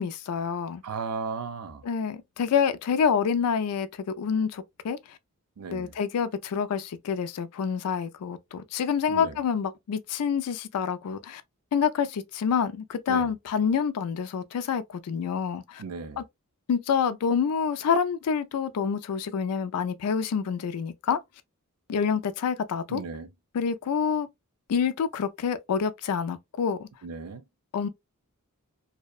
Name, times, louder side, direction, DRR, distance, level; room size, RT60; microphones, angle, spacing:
voice 1, 0.0-0.8 1.8-5.0 5.7-11.4 11.7-15.8 16.2-16.3 16.7-21.2 21.9-23.0 23.5-24.3 24.7-26.9 27.7-27.9, left 6 dB, 85° left, 0.4 m, -27 dB
voice 2, 0.8-1.8 5.6-5.9 9.1-9.4 13.1-13.3 15.8-16.2 22.9-23.3 27.0-27.4, right 4 dB, 80° right, 0.5 m, -35 dB
2.7 x 2.1 x 2.2 m
head